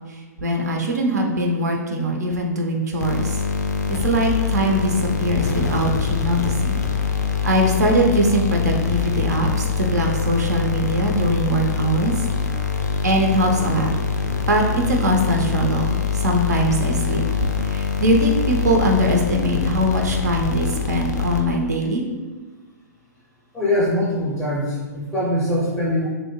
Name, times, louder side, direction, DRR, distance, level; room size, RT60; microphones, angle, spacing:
voice 1, 0.4-3.4 3.9-6.8 7.4-12.1 13.0-13.9 14.5-22.0, right 1 dB, 70° right, 1 dB, 0.4 m, -21 dB
sound 1, 3.0-21.8, left 6 dB, 75° left, 0.3 m, -24 dB
voice 2, 23.5-26.1, left 1 dB, 5° left, -5 dB, 0.5 m, -22 dB
2.6 x 2.1 x 2.8 m, 1.3 s
figure-of-eight pair, 110°, 9 cm